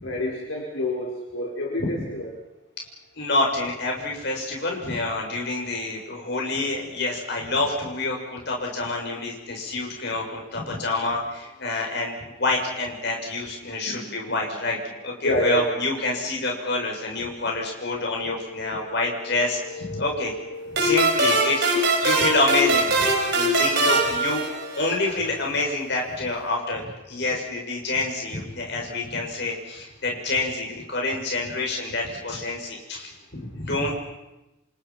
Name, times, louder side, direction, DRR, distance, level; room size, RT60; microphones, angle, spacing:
voice 1, 0.0-2.3 13.9-14.3 15.2-15.7 18.0-21.9, left 1 dB, 70° left, -2 dB, 5.0 m, -31 dB
voice 2, 3.2-20.3 20.7-24.4 24.7-33.9, left 2 dB, 55° left, -1 dB, 7.1 m, -27 dB
sound 1, 20.8-25.1, right 2 dB, 55° right, 5.5 m, -22 dB
29.0 x 27.5 x 5.9 m, 0.98 s
head